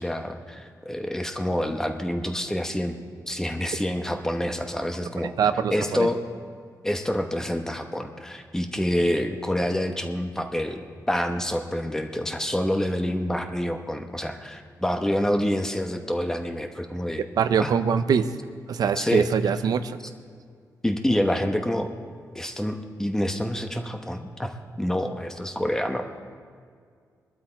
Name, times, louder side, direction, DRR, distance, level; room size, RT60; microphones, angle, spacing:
voice 1, 0.0-2.9 3.3-5.3 5.7-6.2 6.8-17.2 17.6-17.7 19.0-19.3 20.8-21.9 22.3-24.5 24.8-26.0, equal, 10° left, 5 dB, 1.0 m, -27 dB
voice 2, 5.4-6.1 17.4-18.3 18.7-20.0, right 7 dB, 80° right, 10 dB, 0.6 m, -23 dB
22.0 x 12.5 x 4.5 m, 2.1 s
wide cardioid pair, 130°, 7 cm